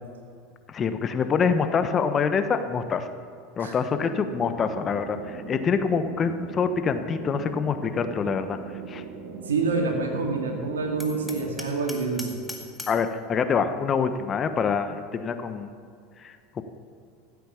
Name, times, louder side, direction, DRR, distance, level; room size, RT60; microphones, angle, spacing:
voice 1, 0.7-3.1 3.6-8.6 8.9-9.0 12.9-15.7 16.2-16.6, left 6 dB, 35° left, 9 dB, 1.1 m, -26 dB
sound 1, 3.9-11.6, right 4 dB, 55° right, 1.8 m, -40 dB
voice 2, 9.4-12.4, right 3 dB, 85° right, 2 dB, 2.3 m, -27 dB
Hammer, 11.0-13.1, left 1 dB, 5° left, 2.0 m, -40 dB
15.0 x 8.4 x 7.0 m, 2.3 s
hypercardioid pair, 85°, 0 cm